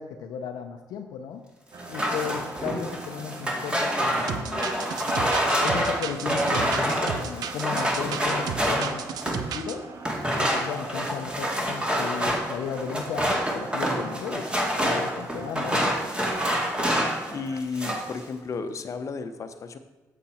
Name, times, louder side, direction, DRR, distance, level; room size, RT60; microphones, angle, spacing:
voice 1, 0.0-1.4 1.9-4.6 5.6-9.8 10.4-14.5 14.8-15.9, left 7 dB, 90° left, 4 dB, 0.7 m, -35 dB
sound 1, 1.7-17.6, right 4 dB, 50° right, 1.0 m, -43 dB
sound 2, 1.8-9.5 10.0-17.3 17.6-18.1, equal, 15° right, 2.0 m, -27 dB
sound 3, 4.3-9.8, right 8 dB, 80° right, 0.6 m, -34 dB
voice 2, 17.3-19.8, left 4 dB, 50° left, 8 dB, 0.9 m, -33 dB
8.2 x 7.4 x 4.3 m, 1.2 s
cardioid pair, 75°, 7 cm